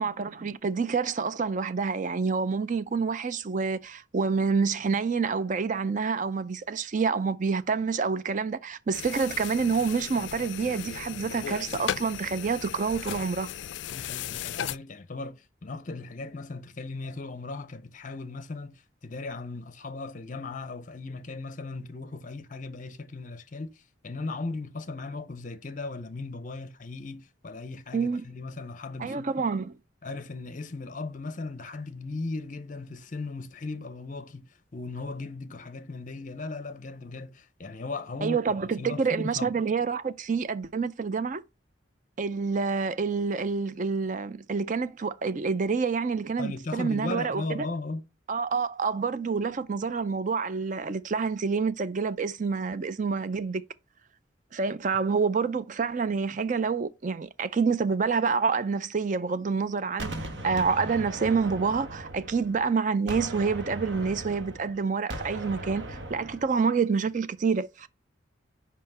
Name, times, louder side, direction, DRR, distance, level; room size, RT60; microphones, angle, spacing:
voice 1, 0.0-13.5 27.9-28.2 29.0-29.7 38.2-41.4 42.2-47.7 48.3-53.6 54.5-60.1 60.4-67.9, right 5 dB, 40° right, 0.4 m, -27 dB
sound 1, 8.9-14.8, left 9 dB, 60° left, 0.3 m, -36 dB
voice 2, 13.9-29.5 30.0-38.4 38.8-39.4 46.4-48.0, left 3 dB, 40° left, 0.7 m, -37 dB
Gunshot gunfire, 60.0-62.7 63.1-66.6, right 1 dB, 60° right, 1.1 m, -38 dB
5.7 x 5.1 x 5.4 m
head